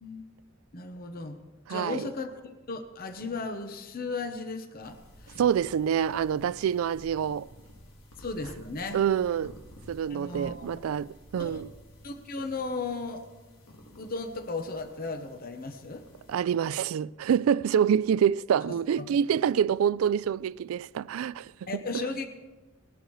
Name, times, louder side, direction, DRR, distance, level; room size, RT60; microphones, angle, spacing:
voice 1, 0.7-1.4 1.7-2.4 2.7-5.4 8.2-9.0 10.1-10.8 11.4-11.6 12.0-13.3 14.0-16.1 19.0-19.1 21.7-22.3, left 3 dB, 45° left, 0.8 m, -36 dB
voice 2, 1.7-2.1 5.4-7.5 8.9-9.5 9.9-11.7 16.3-22.0, right 8 dB, 85° right, 0.3 m, -26 dB
sound 1, 4.8-16.4, equal, 75° left, 2.0 m, -52 dB
19.5 x 11.5 x 3.1 m
head